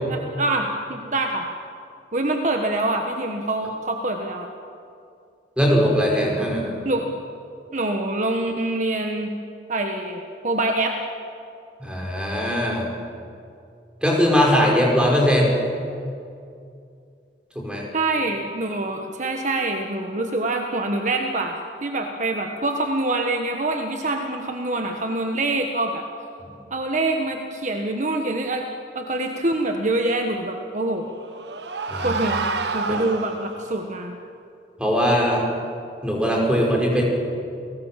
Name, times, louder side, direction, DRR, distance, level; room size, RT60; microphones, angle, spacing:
voice 1, 0.1-1.5 2.1-4.5 6.8-7.1 7.7-9.3 9.7-10.9 17.9-26.0 26.7-28.6 28.9-31.1 32.0-34.1, right 2 dB, 45° right, 3 dB, 1.4 m, -25 dB
voice 2, 5.6-6.7 11.8-12.8 14.0-15.6 17.6-17.9 31.9-32.1 34.8-35.5 36.0-37.0, equal, 5° right, -1 dB, 5.2 m, -20 dB
sound 1, 30.8-33.8, right 4 dB, 75° right, 1.3 m, -29 dB
29.5 x 18.5 x 7.5 m, 2.4 s
head